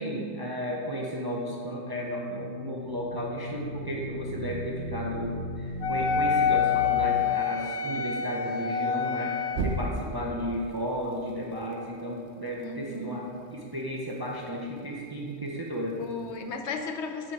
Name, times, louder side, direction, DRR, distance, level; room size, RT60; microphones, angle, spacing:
voice 1, 0.0-9.3 9.6-16.0, equal, 25° right, -3 dB, 0.7 m, -34 dB
sound 1, 1.2-7.0 9.5-10.3, right 1 dB, 85° right, 1.1 m, -36 dB
Wind instrument woodwind instrument, 5.8-9.7, left 7 dB, 70° left, 0.8 m, -27 dB
voice 2, 12.6-13.2 16.0-17.3, left 3 dB, 85° left, 5 dB, 1.1 m, -35 dB
7.5 x 6.6 x 4.8 m, 2.3 s
omnidirectional pair, 1.1 m